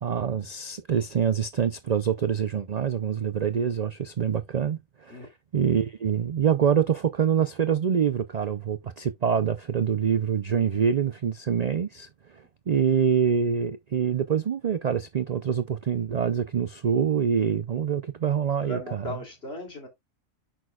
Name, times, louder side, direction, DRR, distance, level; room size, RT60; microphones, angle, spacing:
voice 1, 0.0-12.1 12.7-19.2, right 7 dB, 60° right, 0.4 m, -25 dB
voice 2, 18.6-19.9, left 1 dB, 50° left, 3.3 m, -36 dB
8.9 x 6.3 x 2.3 m
omnidirectional pair, 1.4 m